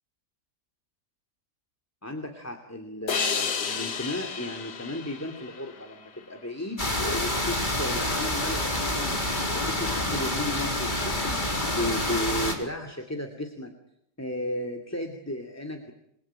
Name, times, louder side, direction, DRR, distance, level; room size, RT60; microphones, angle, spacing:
voice 1, 2.0-9.2 9.5-11.5 11.8-13.7 14.2-15.9, left 1 dB, 10° left, 4 dB, 2.6 m, -34 dB
sound 1, 3.1-6.4, left 6 dB, 80° left, 2.1 m, -32 dB
sound 2, 6.8-12.5, left 1 dB, 25° left, 4.2 m, -28 dB
28.5 x 22.0 x 8.9 m, 0.76 s
omnidirectional pair, 1.8 m